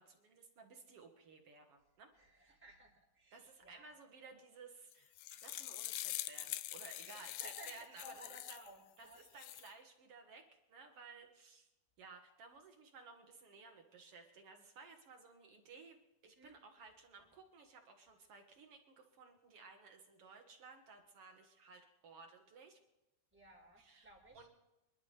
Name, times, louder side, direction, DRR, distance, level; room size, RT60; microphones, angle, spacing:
voice 1, 0.0-2.1 3.3-8.6 9.0-10.4 10.7-11.7 12.0-16.0 16.2-22.8 23.8-24.5, right 4 dB, 55° right, 4 dB, 1.7 m, -57 dB
voice 2, 2.2-3.9 4.2-4.3 7.1-9.2 16.4-16.6 23.3-24.5, equal, 5° right, -3 dB, 4.0 m, -57 dB
sound 1, 4.9-8.7 9.2-9.7, left 16 dB, 80° left, 2.2 m, -44 dB
26.0 x 11.5 x 3.3 m, 0.96 s
omnidirectional pair, 4.0 m